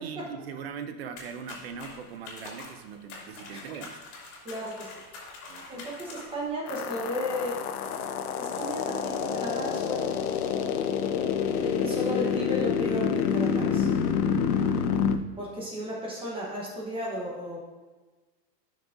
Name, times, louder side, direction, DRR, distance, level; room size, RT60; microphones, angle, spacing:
voice 1, 0.0-4.0 5.5-5.9 14.2-15.0, right 6 dB, 40° right, 8 dB, 0.4 m, -41 dB
sound 1, 1.2-6.5, left 3 dB, 45° left, 2.6 m, -45 dB
voice 2, 4.4-4.9 5.7-7.6 8.4-10.2 11.5-13.9 15.4-17.6, equal, 10° right, -3 dB, 0.9 m, -34 dB
sound 2, 6.7-15.2, left 7 dB, 65° left, 0.7 m, -27 dB
11.0 x 6.1 x 2.5 m, 1.3 s
supercardioid pair, 165°, 49 cm